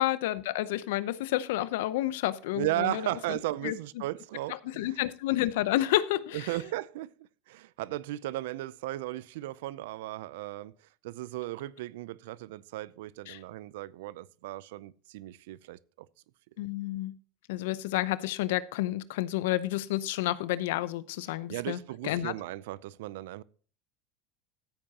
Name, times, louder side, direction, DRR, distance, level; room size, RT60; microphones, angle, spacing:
voice 1, 0.0-3.0 3.3-3.4 3.6-3.8 4.5-6.5 13.3-13.4 16.6-17.1 17.5-22.3, left 15 dB, 80° left, 0.7 m, -30 dB
voice 2, 2.5-4.9 6.3-7.1 7.5-10.7 11.0-15.8 21.5-23.4, right 16 dB, 80° right, 0.5 m, -36 dB
14.5 x 8.7 x 2.9 m
supercardioid pair, 105°, 0 cm